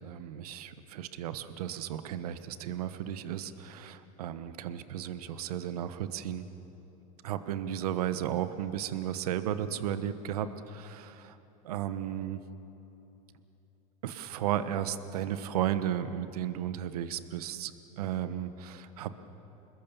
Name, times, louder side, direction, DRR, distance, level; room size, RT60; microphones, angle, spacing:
voice 1, 0.0-6.5 7.2-11.4 11.6-12.4 14.0-17.7 18.0-19.1, right 10 dB, 80° right, 11 dB, 1.2 m, -34 dB
26.5 x 21.0 x 7.1 m, 2.9 s
hypercardioid pair, 90°, 19 cm